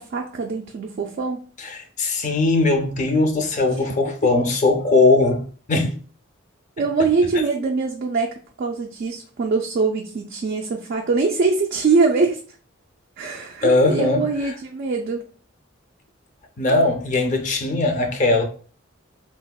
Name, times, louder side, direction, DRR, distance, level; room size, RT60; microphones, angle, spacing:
voice 1, 0.0-1.4 6.8-8.3 8.6-12.4 13.2-15.2, right 4 dB, 50° right, 0.3 m, -23 dB
voice 2, 1.6-6.0 13.6-14.5 16.6-18.4, left 3 dB, 35° left, 0.4 m, -20 dB
3.3 x 2.1 x 2.2 m
head